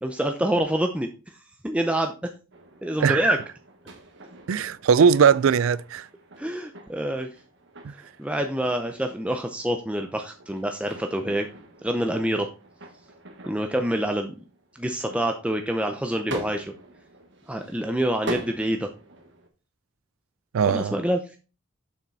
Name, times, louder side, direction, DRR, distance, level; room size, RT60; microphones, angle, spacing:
voice 1, 0.0-2.1 2.8-3.4 6.4-7.3 7.9-11.5 11.8-12.5 13.4-14.3 14.7-16.7 17.5-18.9 20.7-21.4, right 1 dB, 5° right, 0.5 m, -26 dB
sound 1, 2.5-19.5, right 1 dB, 60° right, 1.5 m, -43 dB
voice 2, 4.5-6.1 7.8-7.9 20.5-20.9, right 6 dB, 75° right, 0.4 m, -20 dB
7.1 x 5.9 x 4.0 m
head